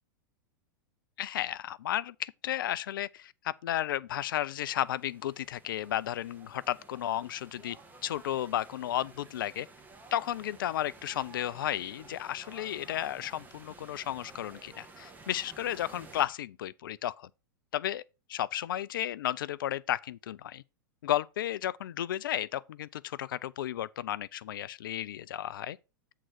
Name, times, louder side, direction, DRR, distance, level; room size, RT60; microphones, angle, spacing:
voice 1, 1.2-7.8 8.0-9.7 10.1-17.3 17.7-18.0 18.3-20.6 21.0-25.8, left 12 dB, 70° left, 0.4 m, -33 dB
sound 1, 4.4-16.2, right 3 dB, 15° right, 1.6 m, -53 dB
7.7 x 3.7 x 6.2 m
hypercardioid pair, 105°, 12 cm